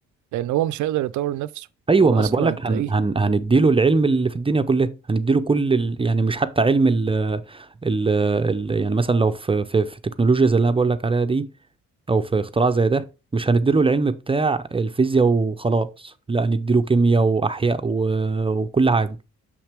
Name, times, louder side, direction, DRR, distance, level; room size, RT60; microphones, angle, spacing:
voice 1, 0.3-1.7 2.0-2.9, right 14 dB, 75° right, 0.5 m, -26 dB
voice 2, 1.9-11.5 12.1-13.1 13.3-19.2, right 3 dB, 20° right, 0.5 m, -20 dB
6.6 x 5.8 x 3.4 m
cardioid pair, 90°, 30 cm